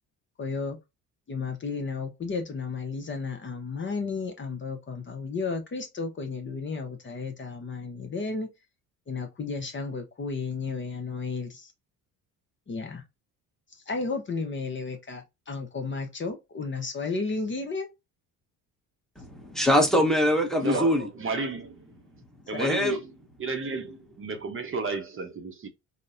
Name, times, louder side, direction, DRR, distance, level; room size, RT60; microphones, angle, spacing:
voice 1, 0.4-0.8 1.3-8.5 9.1-11.7 12.7-13.0 13.9-17.9, left 4 dB, 30° left, 0.7 m, -33 dB
voice 2, 19.2-21.1 22.6-23.0, equal, ahead, 1.0 m, -23 dB
voice 3, 20.6-21.8 22.5-23.1 23.4-25.7, right 4 dB, 35° right, 0.7 m, -32 dB
3.9 x 2.1 x 2.4 m
supercardioid pair, 70°, 37 cm